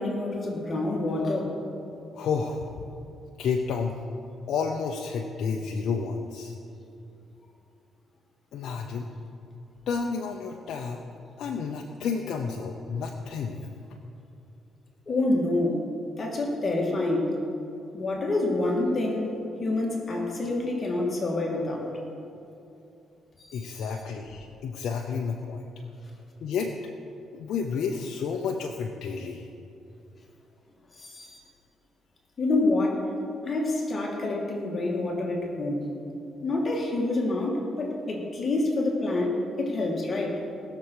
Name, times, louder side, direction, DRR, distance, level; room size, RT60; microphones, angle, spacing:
voice 1, 0.0-1.5 15.1-15.9 16.2-17.4 17.9-21.9 23.4-23.9 30.9-31.4 32.4-33.1 33.4-35.9 36.4-40.4, left 2 dB, 35° left, -1 dB, 2.5 m, -27 dB
voice 2, 2.1-2.8 3.4-4.0 4.5-6.5 8.5-9.1 9.9-11.0 11.4-13.7 23.5-25.7 26.4-26.7 27.3-29.5, left 5 dB, 75° left, 2 dB, 0.8 m, -31 dB
20.0 x 6.9 x 4.8 m, 2.8 s
cardioid pair, 90°, 0 cm